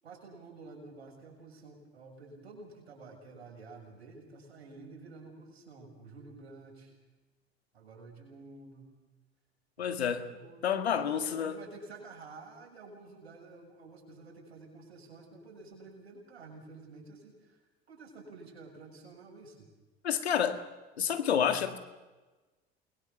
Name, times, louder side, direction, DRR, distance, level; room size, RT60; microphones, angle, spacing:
voice 1, 0.0-7.0 7.7-8.9 9.8-17.6 17.9-19.7, right 3 dB, 85° right, 7.1 m, -50 dB
voice 2, 9.8-10.3 10.6-11.5 20.0-20.6 21.0-21.8, left 8 dB, 90° left, 1.9 m, -29 dB
29.0 x 22.0 x 7.0 m
hypercardioid pair, 75°, 31 cm